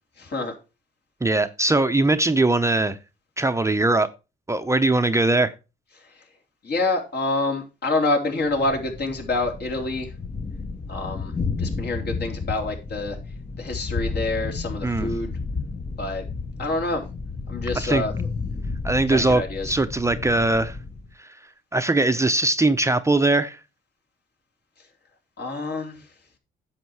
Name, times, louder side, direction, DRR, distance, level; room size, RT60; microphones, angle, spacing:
voice 1, 0.2-0.5 6.6-10.1 10.9-11.3 11.6-13.2 13.6-15.3 16.0-16.2 16.6-17.0 17.5-18.1 19.1-19.7 25.4-26.0, left 2 dB, 55° left, 3.8 m, -27 dB
voice 2, 1.2-3.0 3.4-4.1 4.5-5.5 14.8-15.1 17.7-18.0 18.8-20.8 21.2-21.3 21.7-23.6, right 2 dB, 15° right, 0.7 m, -21 dB
Thunder, 8.5-21.1, left 4 dB, 25° left, 0.8 m, -32 dB
10.0 x 7.4 x 4.7 m
cardioid pair, 90°, 20 cm